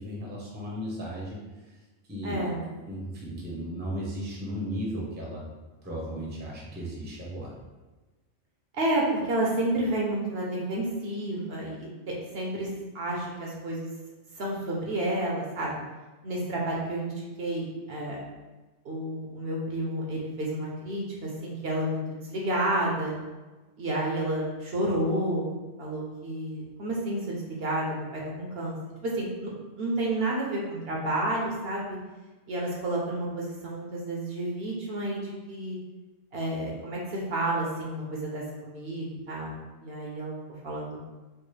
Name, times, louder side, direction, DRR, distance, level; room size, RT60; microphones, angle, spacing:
voice 1, 0.0-1.4 2.1-2.5 2.9-5.4 5.8-7.5, equal, 10° right, -4 dB, 0.6 m, -35 dB
voice 2, 2.2-2.6 8.7-11.9 12.3-12.7 12.9-13.9 14.4-15.8 16.2-17.1 17.4-18.2 18.8-23.1 23.8-25.5 25.8-28.8 29.0-29.5 29.8-32.0 32.5-35.8 36.3-39.6 39.8-40.3 40.6-40.9, right 1 dB, 60° right, -3 dB, 0.8 m, -30 dB
4.5 x 2.0 x 3.2 m, 1.2 s
omnidirectional pair, 1.3 m